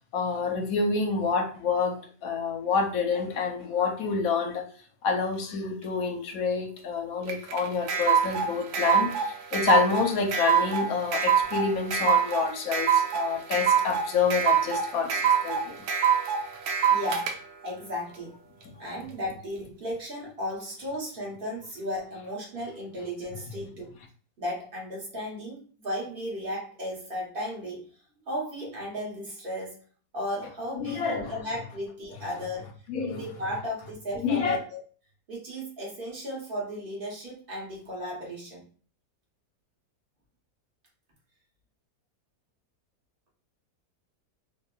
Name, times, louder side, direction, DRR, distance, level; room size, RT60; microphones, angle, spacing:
voice 1, 0.1-4.6 5.0-15.7 30.8-31.3 32.9-33.2 34.2-34.6, left 5 dB, 65° left, 0.9 m, -28 dB
sound 1, 7.3-17.3, right 7 dB, 75° right, 1.1 m, -24 dB
voice 2, 16.9-17.3 17.6-18.4 18.8-24.0 24.4-27.8 28.3-29.8 30.1-32.7 33.1-34.8 35.3-38.6, equal, 35° right, 1.1 m, -35 dB
2.8 x 2.6 x 2.3 m
omnidirectional pair, 1.8 m